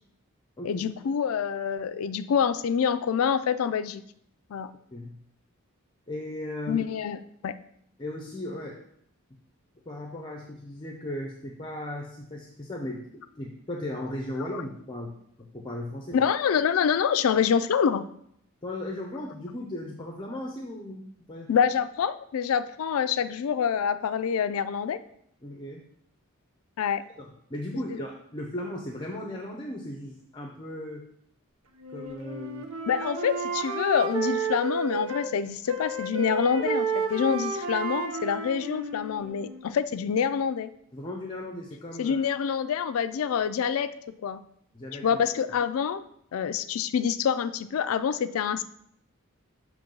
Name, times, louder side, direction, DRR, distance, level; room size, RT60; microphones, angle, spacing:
voice 1, 0.6-4.0 4.5-4.7 6.7-7.2 7.4-7.6 16.1-18.1 21.5-25.0 26.8-27.0 27.7-28.0 32.9-40.7 42.0-43.9 44.2-44.4 45.0-46.0 46.3-48.6, left 7 dB, 75° left, 13 dB, 0.4 m, -26 dB
voice 2, 6.1-6.8 8.0-8.8 9.8-16.3 18.6-21.5 25.4-25.9 27.2-31.1 31.9-32.7 40.9-42.2 44.7-45.2, left 1 dB, 25° left, 0 dB, 0.6 m, -37 dB
Wind instrument woodwind instrument, 31.8-35.3 35.7-39.7, right 4 dB, 80° right, 0.9 m, -31 dB
7.1 x 3.1 x 5.3 m, 0.70 s
head